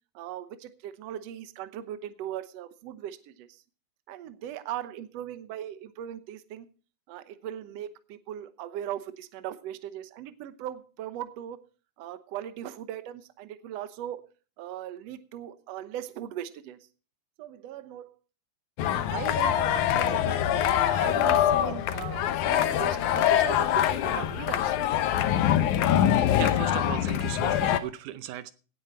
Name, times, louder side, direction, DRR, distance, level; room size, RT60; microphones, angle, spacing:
voice 1, 0.2-3.6 4.1-6.7 7.1-11.6 12.0-14.3 14.6-16.8 17.4-18.1 19.1-20.4 20.7-24.8, right 11 dB, 65° right, 12 dB, 1.9 m, -39 dB
sound 1, 18.8-27.8, left 10 dB, 80° left, 2.3 m, -24 dB
voice 2, 25.9-28.5, right 13 dB, 85° right, 13 dB, 2.3 m, -37 dB
17.5 x 9.1 x 4.3 m, 0.37 s
omnidirectional pair, 3.5 m